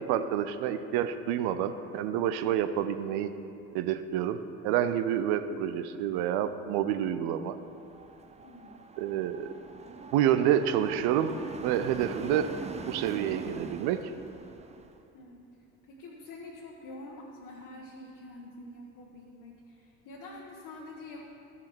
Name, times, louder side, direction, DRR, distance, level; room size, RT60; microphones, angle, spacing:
voice 1, 0.0-3.3 3.7-4.4 4.6-7.6 9.0-9.5 10.1-11.3 11.6-12.5 12.9-14.0, right 10 dB, 60° right, 11 dB, 0.6 m, -28 dB
sound 1, 7.6-15.0, right 4 dB, 15° right, 0.6 m, -43 dB
voice 2, 8.4-8.8 15.1-15.4 15.9-21.2, left 2 dB, 55° left, -3 dB, 1.4 m, -46 dB
13.5 x 5.7 x 4.5 m, 2.7 s
hypercardioid pair, 60°, 43 cm